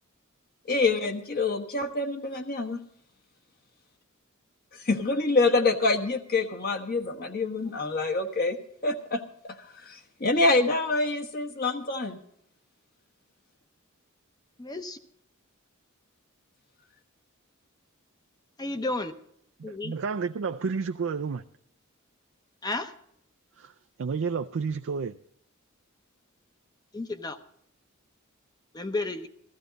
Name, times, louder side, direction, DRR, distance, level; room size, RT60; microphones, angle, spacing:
voice 1, 0.7-2.8 4.7-8.6 8.8-9.5 9.8-12.2, left 3 dB, 45° left, 4 dB, 1.2 m, -26 dB
voice 2, 14.6-15.0 18.6-19.1 19.6-19.9 22.6-22.9 26.9-27.4 28.7-29.3, left 2 dB, 20° left, 9 dB, 0.7 m, -32 dB
voice 3, 19.6-21.4 23.6-23.7 24.0-25.1, right 5 dB, 65° right, 8 dB, 0.4 m, -30 dB
14.5 x 14.5 x 4.0 m, 0.70 s
head